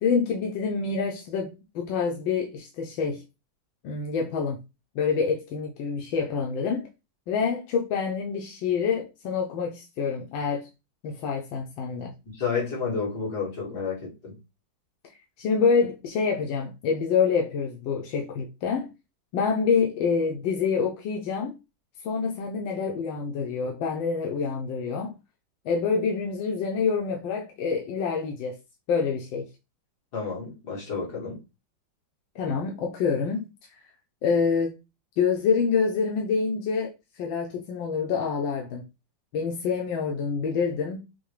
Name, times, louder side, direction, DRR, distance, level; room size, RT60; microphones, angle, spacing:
voice 1, 0.0-3.2 3.8-4.6 4.9-6.9 7.3-10.7 11.0-12.1 15.1-18.9 19.3-21.6 22.0-25.1 25.6-28.6 28.9-29.4 32.3-33.5 34.2-34.7 35.2-36.9 37.2-38.8 39.3-41.0, left 5 dB, 85° left, 1.4 m, -26 dB
voice 2, 12.2-14.3 30.1-31.4, left 5 dB, 60° left, 2.3 m, -30 dB
6.0 x 2.1 x 3.2 m
omnidirectional pair, 2.0 m